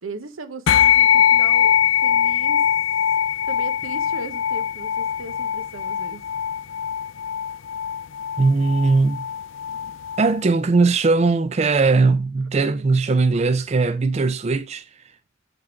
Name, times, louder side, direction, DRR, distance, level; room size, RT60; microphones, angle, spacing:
voice 1, 0.0-2.7 3.5-6.2 12.7-12.9, right 3 dB, 90° right, 0.9 m, -37 dB
sound 1, 0.7-10.4, left 9 dB, 70° left, 0.4 m, -21 dB
voice 2, 8.4-9.3 10.2-14.9, right 3 dB, 35° right, 0.4 m, -19 dB
8.0 x 3.7 x 4.4 m
head